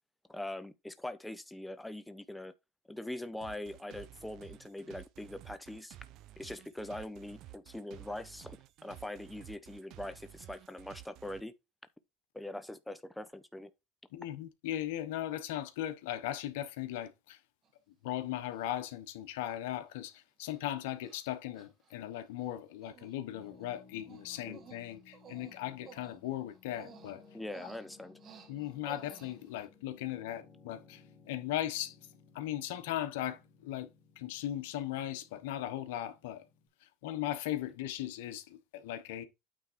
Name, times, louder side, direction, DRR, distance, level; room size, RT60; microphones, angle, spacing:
voice 1, 0.3-2.5 2.9-6.0 6.4-8.6 8.8-11.5 12.3-13.7 24.4-24.6 27.3-28.1, left 1 dB, 5° left, 0.9 m, -42 dB
sound 1, 3.4-11.4, right 14 dB, 60° right, 0.8 m, -53 dB
voice 2, 14.1-17.4 18.0-27.2 27.6-27.7 28.5-31.9 32.3-33.9 34.2-36.4 36.8-39.2, left 13 dB, 80° left, 1.2 m, -38 dB
Human voice, 17.6-17.7 18.5-18.9 19.5-19.6 19.9-20.1 20.4-20.6 21.0-21.2 21.5-22.5 22.8-23.1 23.4-29.7, right 7 dB, 45° right, 1.5 m, -56 dB
Piano, 23.3-36.7, left 5 dB, 40° left, 2.8 m, -60 dB
9.0 x 3.6 x 4.5 m
supercardioid pair, 95°, 0 cm